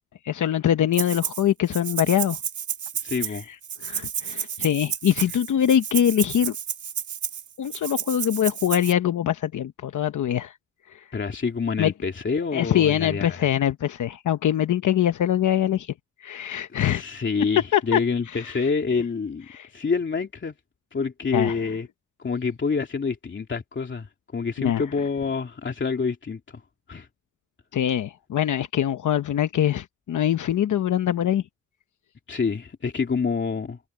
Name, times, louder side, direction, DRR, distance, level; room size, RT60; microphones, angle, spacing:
voice 1, 0.2-2.4 3.2-3.3 3.8-6.5 7.6-10.6 10.9-11.0 11.8-11.9 12.5-15.9 16.2-17.0 17.7-18.0 18.3-18.6 19.5-19.7 21.3-21.6 24.6-24.8 27.7-31.4, left 10 dB, 80° left, 0.9 m, -23 dB
Rattle (instrument), 0.9-1.4 1.7-8.9, right 8 dB, 75° right, 2.1 m, -31 dB
voice 2, 3.0-3.5 11.1-13.5 16.7-20.5 20.9-21.9 22.2-26.4 26.9-27.1 32.3-33.8, left 5 dB, 40° left, 2.8 m, -27 dB
wide cardioid pair, 120°, 30 cm